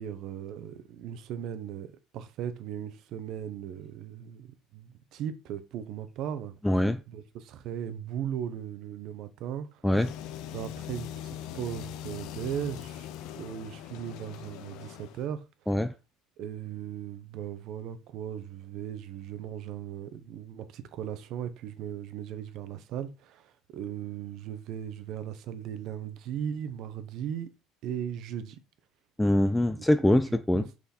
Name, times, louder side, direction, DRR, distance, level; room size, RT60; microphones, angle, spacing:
voice 1, 0.0-9.8 10.5-15.4 16.4-27.5 27.8-28.6 30.3-30.7, right 9 dB, 45° right, 0.9 m, -38 dB
voice 2, 6.6-7.0 9.8-10.1 15.7-15.9 29.2-30.7, left 1 dB, 5° left, 0.3 m, -24 dB
sound 1, 9.9-15.3, left 10 dB, 55° left, 0.7 m, -41 dB
6.0 x 5.8 x 4.3 m
cardioid pair, 175°, 0 cm